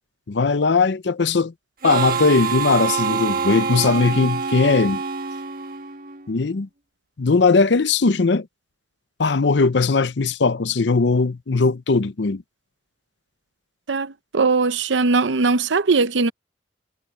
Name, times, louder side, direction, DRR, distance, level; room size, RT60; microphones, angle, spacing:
voice 1, 0.3-1.5 1.8-5.0 6.3-6.7 7.2-8.5 9.2-12.4, left 4 dB, 75° left, 0.7 m, -19 dB
Harmonica, 1.8-6.3, right 5 dB, 50° right, 1.3 m, -25 dB
voice 2, 13.9-16.3, right 4 dB, 80° right, 0.7 m, -20 dB
head